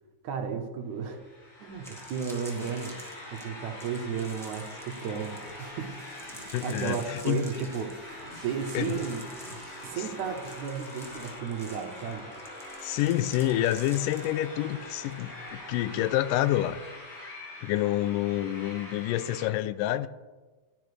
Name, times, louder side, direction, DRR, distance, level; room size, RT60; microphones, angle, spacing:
voice 1, 0.2-1.2 1.6-3.0 3.3-6.0 6.5-7.9 8.4-9.2 9.8-12.3, right 6 dB, 70° right, 4 dB, 2.3 m, -33 dB
sound 1, 1.0-19.5, left 1 dB, 60° left, 5.4 m, -44 dB
sound 2, 1.7-15.2 15.5-15.8, equal, ahead, 0.6 m, -50 dB
sound 3, 5.2-11.4, left 2 dB, 45° left, 4.4 m, -52 dB
voice 2, 6.5-7.4 8.7-9.0 12.8-16.8 17.6-20.1, left 13 dB, 90° left, 14 dB, 2.2 m, -28 dB
14.5 x 12.0 x 3.3 m, 1.2 s
omnidirectional pair, 3.8 m